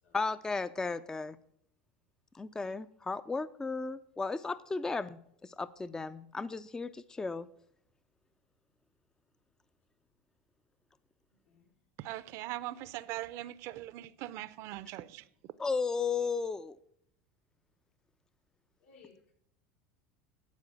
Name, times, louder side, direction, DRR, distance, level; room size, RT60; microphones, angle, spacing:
voice 1, 0.1-1.4 2.3-5.2 5.6-7.5 15.6-16.8, left 4 dB, 10° left, 0.4 m, -34 dB
voice 2, 11.3-11.7 18.8-19.3, left 5 dB, 90° left, 4.3 m, -60 dB
voice 3, 12.0-15.3, right 15 dB, 55° right, 0.6 m, -41 dB
11.5 x 4.8 x 7.3 m
supercardioid pair, 115°, 6 cm